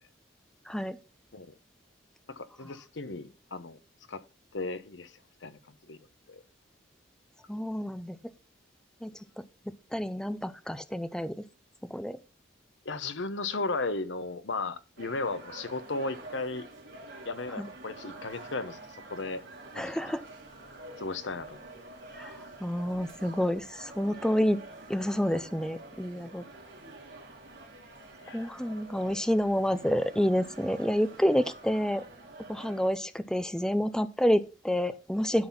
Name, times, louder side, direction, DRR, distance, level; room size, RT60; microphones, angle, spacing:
voice 1, 0.7-1.0 7.5-8.2 9.0-9.1 9.9-11.4 11.9-12.2 17.6-17.7 19.8-20.2 22.2-22.3 22.6-24.6 24.9-26.4 28.3-32.0 32.5-35.5, equal, 5° left, 0.5 m, -28 dB
voice 2, 2.3-3.8 4.1-4.2 4.5-5.1 5.4-5.6 5.9-6.0 6.3-6.4 12.8-16.7 17.2-19.4 19.7-19.9 21.0-21.6 28.2-28.6, left 3 dB, 70° left, 0.9 m, -35 dB
sound 1, 15.0-32.9, right 2 dB, 75° right, 2.8 m, -47 dB
12.0 x 4.1 x 5.9 m
head